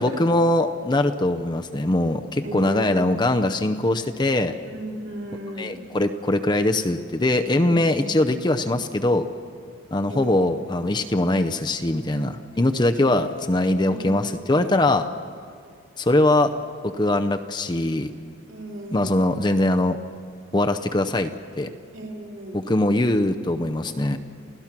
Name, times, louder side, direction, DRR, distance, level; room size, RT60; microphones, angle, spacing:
voice 1, 0.0-4.5 5.6-9.2 9.9-15.0 16.0-16.5 16.8-18.1 18.9-20.0 20.5-21.3 21.6-21.7 22.5-24.2, left 1 dB, 20° left, 7 dB, 0.6 m, -22 dB
voice 2, 2.4-3.1 4.6-5.8 7.6-8.3 10.1-10.6 12.5-13.3 13.9-14.7 18.5-19.1 21.9-22.6, equal, 65° right, -1 dB, 3.4 m, -36 dB
28.5 x 16.0 x 6.0 m, 2.2 s
head